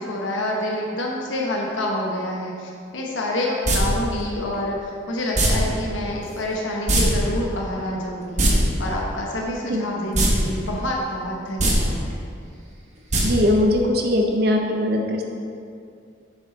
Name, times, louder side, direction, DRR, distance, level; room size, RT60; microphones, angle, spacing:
voice 1, 0.0-12.1, left 1 dB, 80° left, -2 dB, 1.0 m, -27 dB
sound 1, 3.6-3.8 5.3-5.5 6.9-7.0 7.3-7.4 8.2-8.5 10.1-10.3 10.7-10.8 11.5-11.7 13.1-13.2 13.5-13.6, right 2 dB, 40° right, 1.2 m, -19 dB
voice 2, 13.2-15.2, left 1 dB, 55° right, 2 dB, 0.7 m, -20 dB
7.0 x 6.8 x 4.0 m, 2.4 s
head